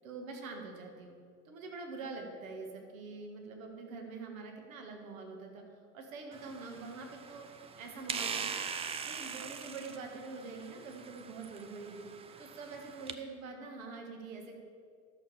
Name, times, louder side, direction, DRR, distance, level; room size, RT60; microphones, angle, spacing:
voice 1, 0.0-1.2 1.5-8.6 9.0-12.0 12.4-14.6, right 3 dB, 65° right, 2 dB, 1.8 m, -45 dB
sound 1, 6.3-13.1, right 6 dB, 15° right, 0.4 m, -42 dB
11.0 x 6.5 x 6.9 m, 2.2 s
figure-of-eight pair, 75°, 43 cm